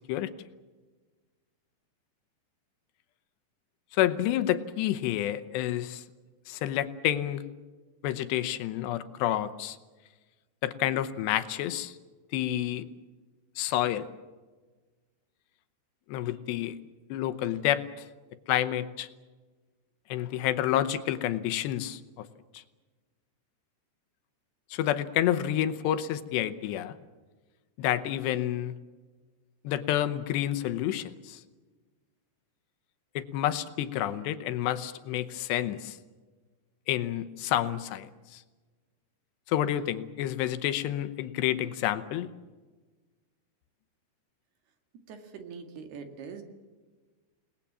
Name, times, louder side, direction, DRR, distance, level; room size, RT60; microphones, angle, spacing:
voice 1, 3.9-6.0 6.5-7.4 8.0-9.8 10.6-12.0 12.3-12.9 13.6-14.1 16.1-16.8 17.1-18.1 18.5-19.1 20.1-22.3 22.5-22.6 24.7-26.9 27.8-28.7 29.6-31.4 33.2-36.0 36.9-38.4 39.5-42.3, left 12 dB, 80° left, 11 dB, 3.1 m, -29 dB
voice 2, 45.1-46.4, right 6 dB, 65° right, 5 dB, 4.1 m, -43 dB
29.0 x 19.5 x 7.4 m, 1.3 s
omnidirectional pair, 5.0 m